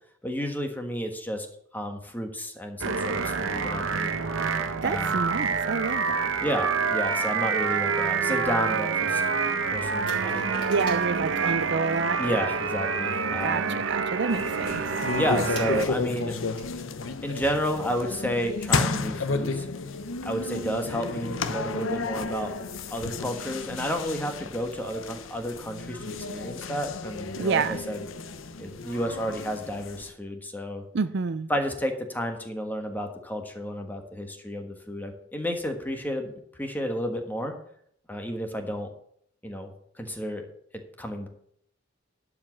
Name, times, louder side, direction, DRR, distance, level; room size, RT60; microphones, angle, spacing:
voice 1, 0.2-1.5 1.7-4.1 4.8-5.2 6.4-9.2 9.7-10.6 12.2-13.8 15.1-16.4 17.2-19.7 20.2-22.5 22.9-28.1 28.6-30.8 31.5-36.3 36.6-37.5 38.1-38.9 39.4-39.7 40.0-40.5 40.7-41.3, equal, 10° left, 4 dB, 1.4 m, -31 dB
sound 1, 2.8-15.9, right 5 dB, 90° right, 1.0 m, -27 dB
voice 2, 4.8-6.3 10.7-12.2 13.4-13.6 13.9-14.8 15.4-15.9 27.4-27.8 30.9-31.5, right 5 dB, 60° right, 13 dB, 0.5 m, -28 dB
sound 2, 10.1-11.7 12.7-13.1 13.4-14.1 14.4-14.5 14.8-14.9 15.1-16.8 17.1-17.2 17.5-17.6, left 1 dB, 25° left, 3.7 m, -45 dB
sound 3, 14.3-30.1, left 4 dB, 80° left, 0.7 m, -32 dB
11.5 x 5.1 x 7.2 m, 0.68 s
head